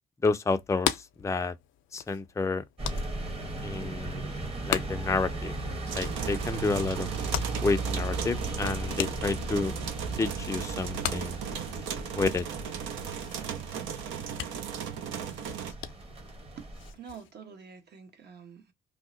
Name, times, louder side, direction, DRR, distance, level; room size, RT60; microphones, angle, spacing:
voice 1, 0.2-1.5 1.9-2.6 3.6-4.4 4.6-5.5 6.0-7.1 7.6-9.7 10.2-11.4 12.2-12.4, left 3 dB, 15° left, 0.4 m, -30 dB
sound 1, 0.6-17.3, left 12 dB, 80° left, 0.4 m, -40 dB
sound 2, 2.8-16.9, right 2 dB, 30° right, 1.0 m, -36 dB
sound 3, 5.9-15.7, right 8 dB, 80° right, 0.5 m, -37 dB
voice 2, 16.9-18.7, right 6 dB, 55° right, 1.0 m, -47 dB
2.8 x 2.0 x 3.7 m
cardioid pair, 90°, 20 cm